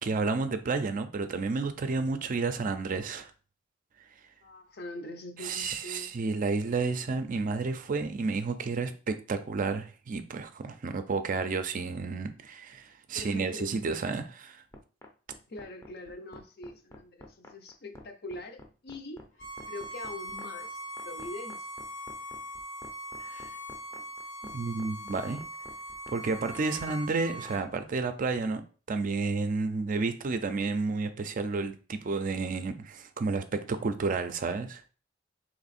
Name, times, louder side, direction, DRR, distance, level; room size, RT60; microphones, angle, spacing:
voice 1, 0.0-3.3 5.4-14.6 23.2-23.5 24.4-25.4 26.1-28.6 28.9-34.8, right 4 dB, 45° right, 0.4 m, -31 dB
voice 2, 4.4-6.1 13.1-13.8 15.5-19.2 19.7-21.7, left 2 dB, 55° left, 0.7 m, -43 dB
sound 1, 14.7-27.6, left 1 dB, 15° left, 0.6 m, -49 dB
Bowed string instrument, 19.4-27.6, equal, 80° left, 1.4 m, -41 dB
3.5 x 3.0 x 4.1 m
head